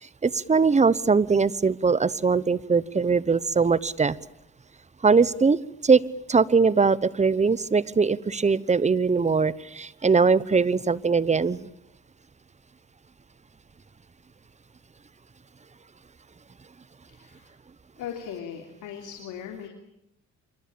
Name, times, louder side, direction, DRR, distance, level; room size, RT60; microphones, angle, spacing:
voice 1, 0.0-4.2 5.0-6.0 6.3-11.7, right 5 dB, 25° right, 19 dB, 1.0 m, -21 dB
voice 2, 17.1-17.5 18.0-19.7, left 8 dB, 90° left, 3 dB, 3.3 m, -38 dB
26.5 x 24.5 x 8.8 m, 0.79 s
cardioid pair, 90°, 30 cm